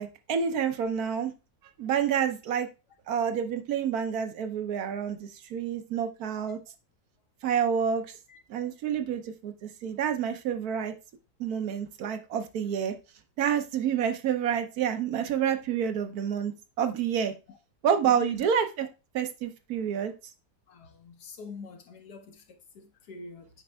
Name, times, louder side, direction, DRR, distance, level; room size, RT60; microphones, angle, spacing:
voice 1, 0.0-1.3 1.8-2.7 3.1-6.6 7.4-8.0 8.5-10.9 11.4-12.9 13.4-16.5 16.8-17.3 17.8-18.9 19.1-20.1, right 8 dB, 70° right, 1.2 m, -28 dB
voice 2, 8.3-8.7 18.1-18.4 20.7-23.5, left 5 dB, 80° left, 1.6 m, -45 dB
8.4 x 5.3 x 2.3 m
omnidirectional pair, 1.7 m